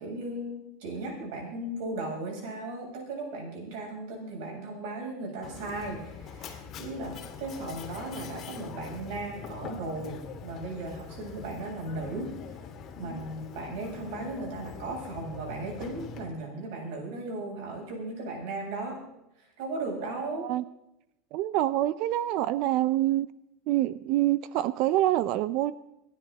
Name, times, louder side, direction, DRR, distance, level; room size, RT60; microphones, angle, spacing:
voice 1, 0.0-12.6 13.0-19.0 19.4-20.5, right 2 dB, 65° right, 0 dB, 7.9 m, -36 dB
Mechanisms, 5.4-16.2, left 6 dB, 30° left, 2.1 m, -43 dB
voice 2, 21.3-23.3 23.7-25.7, right 14 dB, 50° right, 15 dB, 0.5 m, -26 dB
26.0 x 10.5 x 4.1 m, 0.85 s
supercardioid pair, 160°, 0 cm